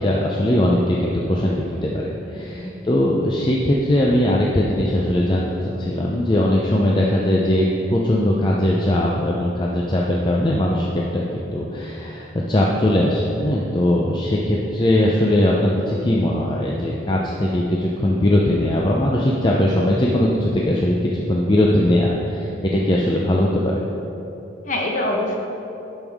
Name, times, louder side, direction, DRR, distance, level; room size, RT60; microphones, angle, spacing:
voice 1, 0.0-11.2 11.5-23.5, left 1 dB, 25° left, -3 dB, 0.5 m, -20 dB
voice 2, 2.3-2.7 24.6-25.4, left 1 dB, 40° left, -1 dB, 1.1 m, -25 dB
11.0 x 5.4 x 3.5 m, 2.9 s
head